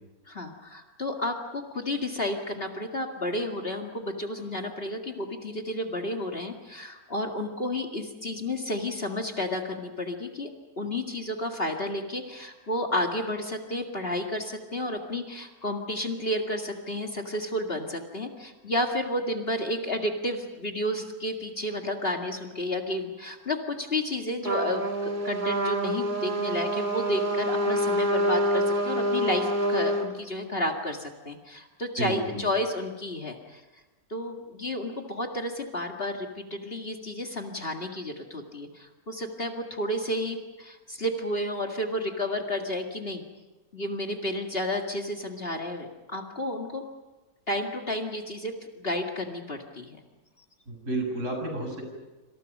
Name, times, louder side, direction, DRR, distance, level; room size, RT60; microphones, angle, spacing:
voice 1, 0.3-10.5 10.8-33.6 34.1-43.2 43.7-46.8 47.5-50.0, left 1 dB, 40° left, 2 dB, 2.3 m, -31 dB
Trumpet, 24.4-30.1, equal, 30° right, 2.8 m, -27 dB
voice 2, 32.0-32.4 50.7-51.8, right 2 dB, 55° right, 2 dB, 7.7 m, -31 dB
27.0 x 27.0 x 5.4 m, 1.2 s
omnidirectional pair, 1.6 m